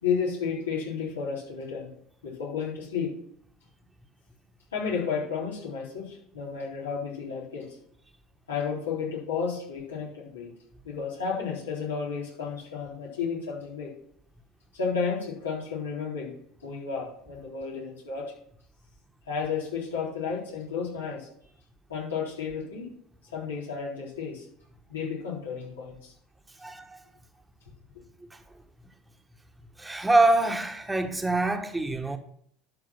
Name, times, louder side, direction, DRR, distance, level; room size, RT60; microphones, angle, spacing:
voice 1, 0.0-1.9 2.2-3.1 4.7-7.8 8.5-10.5 10.8-13.9 14.7-16.3 16.6-18.3 19.3-21.3 21.9-22.8 23.3-24.5 24.9-26.1, left 6 dB, 90° left, 3.8 m, -32 dB
voice 2, 26.6-27.0 28.3-28.4 29.8-32.2, right 2 dB, 10° right, 1.1 m, -25 dB
12.0 x 4.9 x 5.9 m
hypercardioid pair, 75°, 0 cm